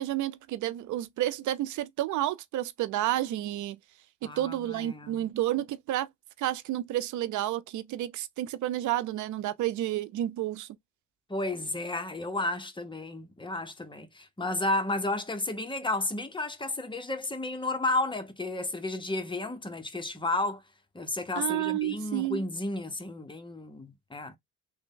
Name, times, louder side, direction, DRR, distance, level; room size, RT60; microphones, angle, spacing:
voice 1, 0.0-3.8 4.2-6.1 6.4-10.8 21.4-22.4, right 13 dB, 75° right, 0.5 m, -30 dB
voice 2, 4.2-5.2 11.3-20.6 20.9-24.3, left 2 dB, 15° left, 0.8 m, -32 dB
3.3 x 2.2 x 3.7 m
cardioid pair, 90°, 30 cm